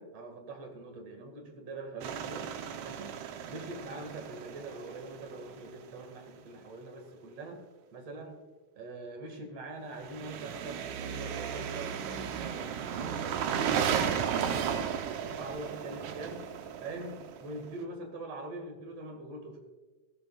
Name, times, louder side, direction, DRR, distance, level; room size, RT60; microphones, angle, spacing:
voice 1, 0.0-2.5 2.8-3.1 3.4-7.6 7.9-8.4 8.7-13.2 13.5-14.8 15.2-16.4 16.8-19.6, right 2 dB, 60° right, 4 dB, 3.1 m, -43 dB
sound 1, 2.0-5.9 10.0-17.7, right 8 dB, 90° right, 2.3 m, -35 dB
19.0 x 13.5 x 2.4 m, 1.2 s
omnidirectional pair, 3.3 m